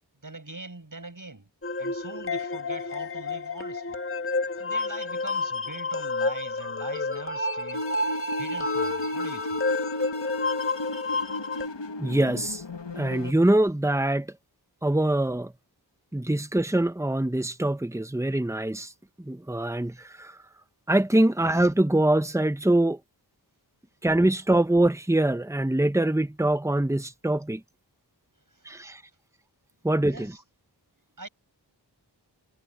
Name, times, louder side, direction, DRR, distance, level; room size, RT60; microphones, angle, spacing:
voice 1, 0.2-1.5 1.8-4.0 4.6-7.9 8.4-9.6 28.5-28.7 30.1-30.4 31.2-31.3, right 2 dB, 50° right, 6.4 m, -42 dB
sound 1, 1.6-11.7, left 3 dB, 30° left, 1.5 m, -30 dB
sound 2, 7.7-13.3, left 2 dB, 85° left, 1.6 m, -34 dB
voice 2, 12.0-12.6 13.0-14.3 14.8-15.5 16.1-18.9 19.2-20.4 20.9-23.0 24.0-27.6 28.6-29.0 29.8-30.3, right 1 dB, 5° right, 1.1 m, -24 dB
wide cardioid pair, 55°, 42 cm